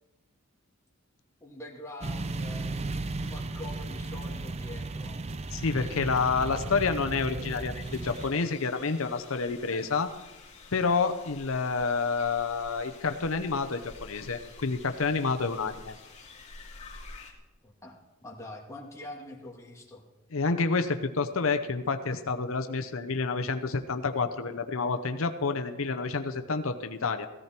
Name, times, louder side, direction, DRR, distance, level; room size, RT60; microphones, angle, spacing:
voice 1, 1.4-5.2 5.8-6.0 9.6-9.8 15.7-15.8 17.6-18.0 18.2-20.0, left 1 dB, 15° left, -2 dB, 2.2 m, -45 dB
sound 1, 2.0-8.3, right 2 dB, 30° right, 0.6 m, -35 dB
voice 2, 5.5-10.1 10.7-16.0 20.3-27.3, left 4 dB, 90° left, 7 dB, 0.8 m, -29 dB
sound 2, 7.8-17.3, left 3 dB, 35° left, 2.5 m, -49 dB
16.5 x 14.0 x 4.4 m, 1.0 s
head